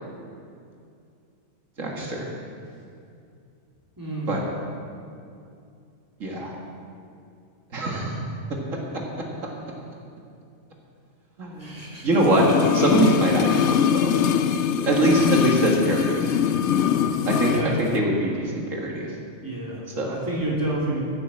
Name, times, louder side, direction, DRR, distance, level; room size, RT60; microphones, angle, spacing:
voice 1, 1.8-2.3 4.3-4.4 6.2-6.5 7.7-8.2 11.4-11.7 12.0-12.5 12.7-14.1 14.8-16.3 17.3-17.5 17.8-19.1 20.0-20.2, right 1 dB, 80° right, -2 dB, 2.1 m, -23 dB
voice 2, 4.0-4.4 11.6-12.1 17.4-17.9 19.4-21.0, right 1 dB, 15° right, -5 dB, 3.0 m, -29 dB
sound 1, 12.2-17.7 17.9-18.0, left 8 dB, 70° left, 0.8 m, -22 dB
15.0 x 7.7 x 7.7 m, 2.5 s
omnidirectional pair, 1.3 m